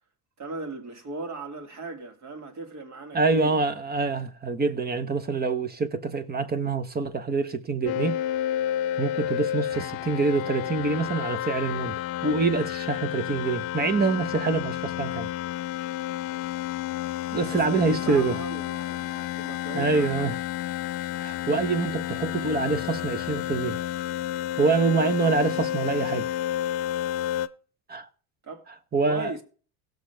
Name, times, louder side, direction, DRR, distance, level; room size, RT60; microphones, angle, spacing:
voice 1, 0.4-3.6 17.5-20.3 28.4-28.7 29.1-29.4, right 3 dB, 40° right, 2.4 m, -38 dB
voice 2, 3.1-8.2 9.0-11.9 12.2-15.3 17.3-18.4 19.7-20.4 21.2-23.8 24.6-26.3 27.9-28.1 28.9-29.3, right 4 dB, 20° right, 1.1 m, -25 dB
sound 1, 7.9-27.5, left 12 dB, 55° left, 0.8 m, -31 dB
16.5 x 6.5 x 3.4 m
supercardioid pair, 105°, 43 cm